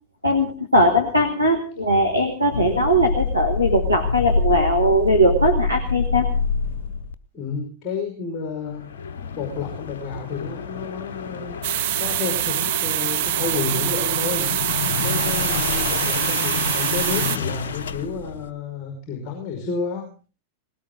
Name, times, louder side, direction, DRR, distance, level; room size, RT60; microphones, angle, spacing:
voice 1, 0.2-6.3, equal, 90° right, 2 dB, 1.9 m, -19 dB
sound 1, 2.5-7.1 8.6-18.5, left 5 dB, 60° left, 0.9 m, -27 dB
voice 2, 7.3-8.9 9.4-11.6 12.0-14.5 15.0-20.1, left 5 dB, 25° left, 2 dB, 5.5 m, -30 dB
sound 2, 11.6-17.4, right 15 dB, 55° right, 0.9 m, -24 dB
20.0 x 18.0 x 3.9 m, 0.37 s
figure-of-eight pair, 90°, 0 cm